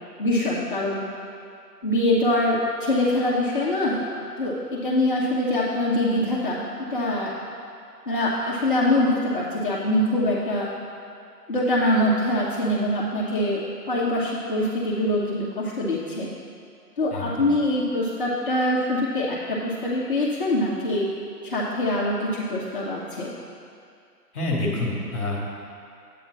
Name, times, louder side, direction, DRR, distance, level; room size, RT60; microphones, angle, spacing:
voice 1, 0.2-1.0 1.8-4.0 4.4-7.3 8.1-10.7 11.5-13.6 13.9-16.3 17.0-21.1 21.4-23.3, left 1 dB, 30° left, -6 dB, 1.0 m, -24 dB
voice 2, 17.1-17.5 24.3-25.4, left 2 dB, ahead, -19 dB, 1.3 m, -27 dB
10.5 x 8.6 x 4.0 m, 2.3 s
hypercardioid pair, 170°, 48 cm